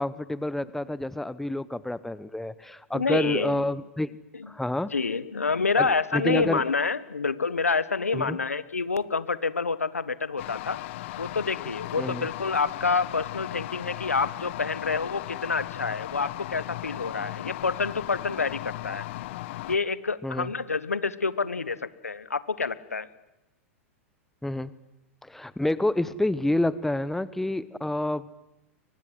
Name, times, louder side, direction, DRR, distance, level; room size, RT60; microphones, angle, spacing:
voice 1, 0.0-4.1 4.5-4.9 5.8-6.6 8.1-8.4 12.0-12.3 20.2-20.5 24.4-24.7 25.2-28.3, left 1 dB, 5° left, 17 dB, 0.9 m, -28 dB
voice 2, 2.9-3.6 4.3-4.5 4.9-10.8 11.2-19.0 19.7-23.1, left 4 dB, 90° left, 17 dB, 1.3 m, -28 dB
sound 1, 10.4-19.8, left 17 dB, 55° left, 1.1 m, -37 dB
29.5 x 24.0 x 7.8 m, 0.96 s
hypercardioid pair, 100°, 8 cm